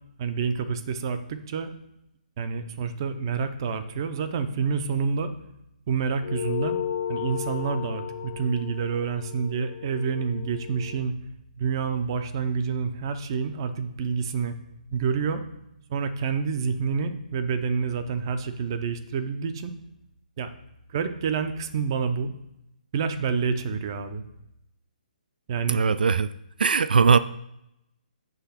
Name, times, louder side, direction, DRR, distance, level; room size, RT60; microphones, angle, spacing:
voice 1, 0.2-1.7 2.4-5.3 5.9-6.8 7.1-11.1 11.6-14.5 14.9-15.4 15.9-19.7 20.4-20.5 20.9-22.3 22.9-24.2 25.5-25.8, right 5 dB, 30° right, 10 dB, 0.6 m, -28 dB
sound 1, 6.2-11.0, left 9 dB, 50° left, 0.7 m, -34 dB
voice 2, 25.7-26.3 26.6-27.2, right 5 dB, 80° right, 15 dB, 0.3 m, -20 dB
8.0 x 3.4 x 5.7 m, 0.84 s
hypercardioid pair, 170°, 5 cm